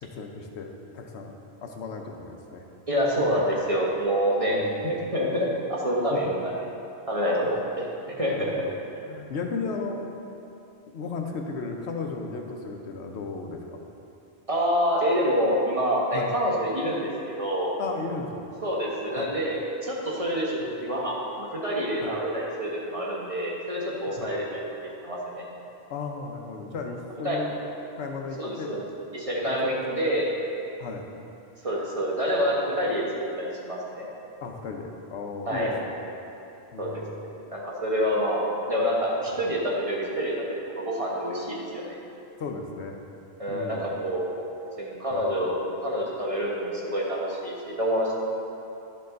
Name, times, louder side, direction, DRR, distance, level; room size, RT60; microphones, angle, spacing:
voice 1, 0.0-2.7 3.2-3.3 4.5-4.9 6.1-6.4 7.4-7.5 8.3-8.5 9.1-10.1 10.9-13.8 16.1-16.3 17.8-18.5 19.2-19.3 22.0-22.1 24.2-24.3 25.9-27.6 28.0-28.8 29.5-30.2 30.8-31.1 34.4-35.9 36.7-37.2 42.4-43.0 43.5-43.9 45.1-45.2, left 4 dB, 75° left, 3 dB, 1.0 m, -35 dB
voice 2, 2.9-6.4 7.1-7.9 8.2-8.5 14.5-17.1 17.4-17.7 18.6-25.5 27.2-27.4 28.4-28.8 29.1-30.3 31.6-34.1 35.5-35.7 36.8-37.0 37.5-38.4 38.7-42.0 43.4-44.3 44.8-45.6 45.8-48.1, equal, 30° right, -4 dB, 1.2 m, -27 dB
11.5 x 5.4 x 3.8 m, 2.8 s
omnidirectional pair, 1.2 m